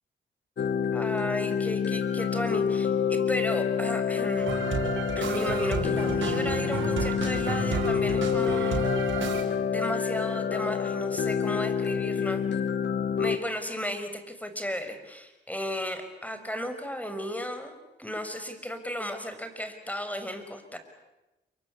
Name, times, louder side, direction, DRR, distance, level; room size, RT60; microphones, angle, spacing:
sound 1, 0.6-13.4, left 7 dB, 70° left, 1.5 m, -28 dB
voice 1, 0.9-4.5 5.1-8.8 9.7-12.4 13.2-17.7 18.0-20.8, equal, 10° left, 8 dB, 5.8 m, -34 dB
sound 2, 4.4-9.4, right 4 dB, 85° right, 5.4 m, -31 dB
28.5 x 24.0 x 8.7 m, 1.0 s
cardioid pair, 60°, 19 cm